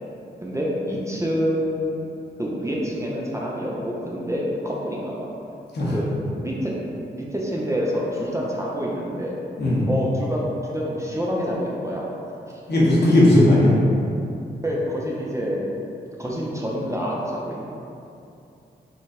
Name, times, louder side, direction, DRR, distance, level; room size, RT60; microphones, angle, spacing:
voice 1, 0.4-2.0 2.4-5.3 5.9-6.1 6.3-6.7 7.1-9.4 9.9-12.1 14.6-15.6 16.2-17.7, equal, 15° right, -4 dB, 0.7 m, -27 dB
voice 2, 12.7-13.7, left 1 dB, 60° left, -7 dB, 1.3 m, -16 dB
4.0 x 2.4 x 4.2 m, 2.6 s
supercardioid pair, 45°, 20 cm